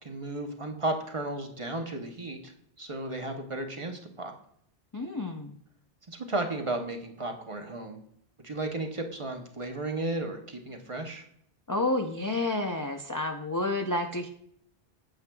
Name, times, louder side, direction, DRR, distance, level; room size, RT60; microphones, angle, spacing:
voice 1, 0.0-2.5 2.8-4.3 6.1-8.0 8.4-11.2, right 2 dB, 35° right, 3 dB, 0.9 m, -34 dB
voice 2, 4.9-5.6 11.7-14.3, left 2 dB, 30° left, 4 dB, 0.4 m, -30 dB
8.8 x 7.5 x 2.3 m, 0.69 s
omnidirectional pair, 1.0 m